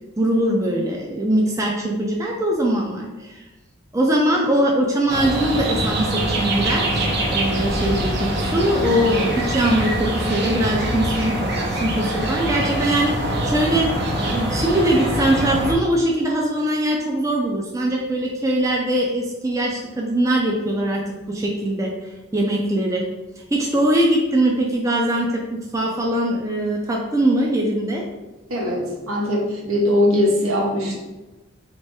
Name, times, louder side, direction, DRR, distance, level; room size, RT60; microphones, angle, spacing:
voice 1, 0.2-3.4 3.9-13.9 14.2-21.9 22.3-23.1 23.5-28.0, right 1 dB, 15° right, -1 dB, 0.4 m, -21 dB
sound 1, 5.1-15.7, right 1 dB, 50° right, 0.7 m, -24 dB
voice 2, 28.5-30.9, left 1 dB, 80° right, -2 dB, 1.2 m, -20 dB
3.2 x 2.9 x 4.6 m, 1.1 s
head